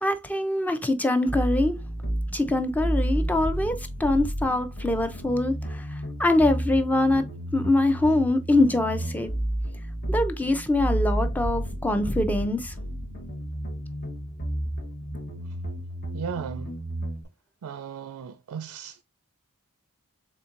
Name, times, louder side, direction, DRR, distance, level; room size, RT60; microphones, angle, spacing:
voice 1, 0.0-1.8 2.3-5.9 6.2-7.2 7.5-9.3 10.1-12.7, left 2 dB, 5° left, 0.5 m, -24 dB
sound 1, 1.3-17.2, right 1 dB, 45° left, 0.9 m, -31 dB
voice 2, 16.1-16.7 17.6-19.0, right 7 dB, 80° right, 0.4 m, -36 dB
4.3 x 3.6 x 2.5 m
head